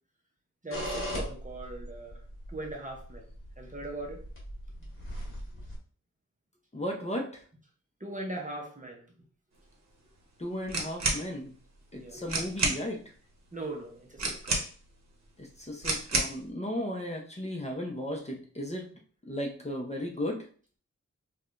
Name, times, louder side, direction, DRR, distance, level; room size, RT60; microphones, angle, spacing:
voice 1, 0.6-2.2 2.5-3.3 3.6-4.2 8.0-9.0 11.9-12.2 13.5-14.6, right 2 dB, 25° right, 0 dB, 0.7 m, -40 dB
sound 1, 0.7-5.8, equal, 40° left, 1.5 m, -39 dB
voice 2, 6.7-7.4 10.4-11.5 11.9-13.0 15.4-18.9 19.3-20.5, equal, 20° left, 0 dB, 0.7 m, -35 dB
sound 2, 10.7-11.2 12.0-12.1 12.3-12.8 14.2-14.9 15.8-16.4, right 2 dB, 60° right, 0.9 m, -29 dB
4.7 x 2.3 x 2.5 m, 0.41 s
wide cardioid pair, 110°, 31 cm